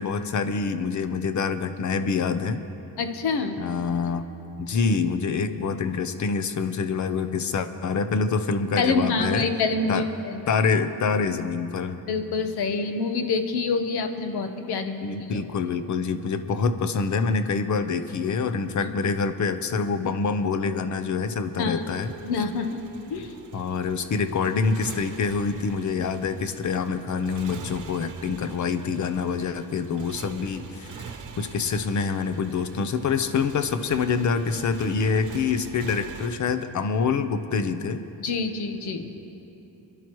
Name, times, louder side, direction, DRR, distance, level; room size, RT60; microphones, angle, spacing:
voice 1, 0.0-2.6 3.6-4.3 4.6-9.5 9.9-10.0 10.5-12.0 15.0-22.1 23.5-38.0, left 5 dB, 50° left, 10 dB, 0.8 m, -26 dB
voice 2, 3.0-3.6 8.8-10.4 12.1-15.2 18.8-18.9 21.6-21.9 22.2-22.8 23.1-23.3 38.2-39.1, left 4 dB, 90° left, 6 dB, 1.2 m, -26 dB
Motorcycle, 21.8-36.3, right 6 dB, 55° right, 0.9 m, -44 dB
27.5 x 11.0 x 3.1 m, 3.0 s
cardioid pair, 140°, 38 cm